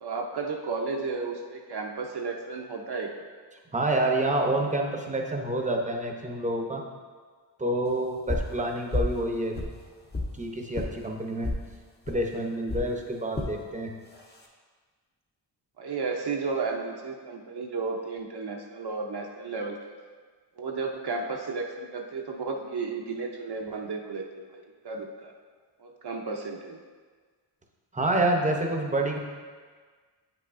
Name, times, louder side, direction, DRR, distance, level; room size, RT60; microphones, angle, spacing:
voice 1, 0.0-3.1 15.8-19.8 20.6-25.3 25.8-26.8, right 4 dB, 60° right, 1 dB, 0.7 m, -33 dB
voice 2, 3.7-6.8 7.6-9.7 10.3-11.5 12.1-13.9 27.9-29.2, right 1 dB, 15° right, 1 dB, 0.7 m, -28 dB
sound 1, 8.3-8.6 8.9-9.2 9.5-10.3 10.7-10.9 11.4-11.6 12.1-12.2 12.7-12.9 13.3-13.5 14.1-14.5, left 2 dB, 20° left, 0.7 m, -30 dB
8.9 x 5.6 x 2.5 m, 1.5 s
wide cardioid pair, 130°, 46 cm